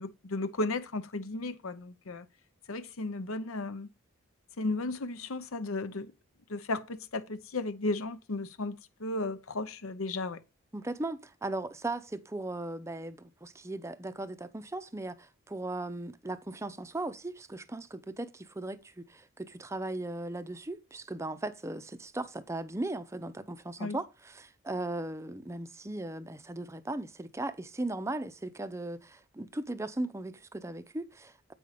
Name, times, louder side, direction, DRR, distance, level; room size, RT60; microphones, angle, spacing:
voice 1, 0.0-2.3 2.7-3.9 4.6-6.1 6.5-10.4 23.8-24.0, left 2 dB, 80° left, 0.8 m, -34 dB
voice 2, 10.7-31.5, right 2 dB, 15° right, 0.5 m, -37 dB
8.5 x 5.4 x 4.8 m
head